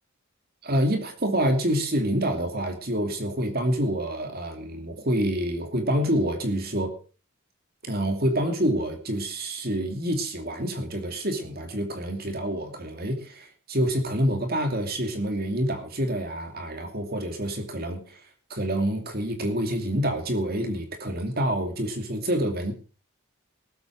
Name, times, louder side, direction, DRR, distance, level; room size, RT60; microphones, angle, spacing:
voice 1, 0.6-6.9 7.8-18.2 18.5-22.7, equal, 45° right, 5 dB, 2.7 m, -27 dB
18.5 x 8.4 x 6.3 m, 0.38 s
head